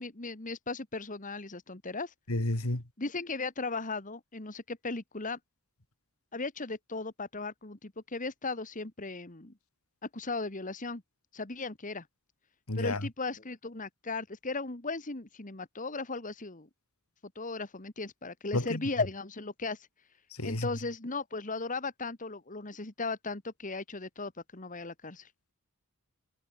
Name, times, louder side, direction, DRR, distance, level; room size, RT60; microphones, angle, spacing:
voice 1, 0.0-2.1 3.0-5.4 6.3-9.5 10.0-11.0 11.3-12.1 12.7-16.7 17.3-19.9 20.4-25.3, left 3 dB, 35° left, 1.8 m, -37 dB
voice 2, 2.3-2.8 12.7-13.0 18.5-18.8 20.3-20.7, left 1 dB, 80° left, 2.7 m, -31 dB
head